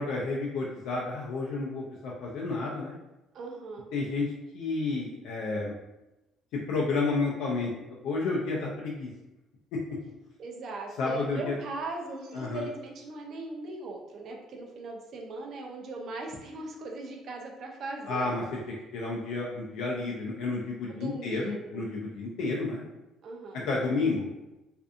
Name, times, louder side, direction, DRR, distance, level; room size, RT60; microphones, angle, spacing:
voice 1, 0.0-3.0 3.9-4.2 4.5-5.7 6.7-9.1 11.0-11.5 12.3-12.7 18.1-18.4 18.9-22.8 23.7-24.3, left 3 dB, 75° left, -3 dB, 0.4 m, -31 dB
voice 2, 3.3-3.9 10.4-18.3 20.9-21.8 23.2-23.7, right 2 dB, 50° right, 1 dB, 0.5 m, -39 dB
2.5 x 2.5 x 2.4 m, 0.99 s
cardioid pair, 130°, 0 cm